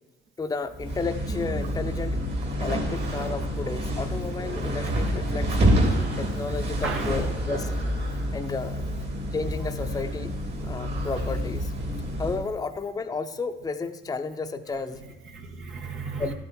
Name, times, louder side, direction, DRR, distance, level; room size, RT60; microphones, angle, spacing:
voice 1, 0.4-2.2 2.6-5.6 6.2-7.7 8.3-8.8 9.3-10.3 10.6-11.7 12.2-15.0 16.2-16.3, left 4 dB, 20° left, 7 dB, 0.6 m, -32 dB
sound 1, 0.7-12.5, equal, 60° right, 3.0 m, -28 dB
voice 2, 6.8-7.2 14.7-16.3, right 4 dB, 85° right, 1 dB, 1.6 m, -35 dB
12.0 x 8.8 x 4.4 m, 1.3 s
cardioid pair, 90°, 20 cm